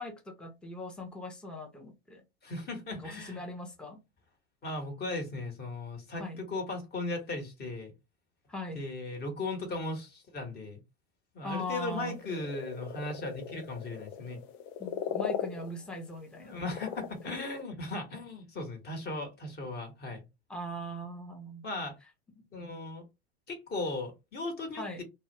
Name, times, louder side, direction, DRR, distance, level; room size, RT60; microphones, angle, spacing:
voice 1, 0.0-2.2 2.9-4.0 6.1-6.4 8.5-8.8 11.4-12.2 14.8-16.6 20.5-21.7 24.8-25.0, left 1 dB, 5° left, 0.6 m, -40 dB
voice 2, 2.4-3.4 4.6-7.9 8.7-10.8 11.3-14.4 16.4-20.2 21.6-22.0 22.5-23.0 23.5-25.0, left 2 dB, 30° left, 1.1 m, -37 dB
sound 1, 11.5-11.6 11.9-16.3 16.6-17.6, left 8 dB, 50° left, 0.6 m, -39 dB
2.1 x 2.0 x 3.3 m
hypercardioid pair, 90°, 33 cm